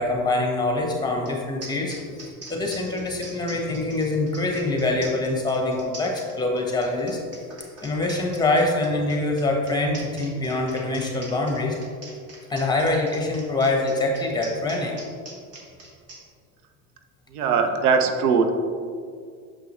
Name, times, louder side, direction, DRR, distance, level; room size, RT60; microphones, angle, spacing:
voice 1, 0.0-7.2 7.8-11.8 12.5-15.0, left 2 dB, 10° left, 0 dB, 1.2 m, -24 dB
sound 1, 1.2-1.3 1.6-16.2, right 2 dB, 35° right, 1.5 m, -43 dB
voice 2, 17.3-18.5, right 5 dB, 85° right, 6 dB, 0.7 m, -20 dB
6.6 x 5.5 x 3.1 m, 2.2 s
hypercardioid pair, 95°, 45 cm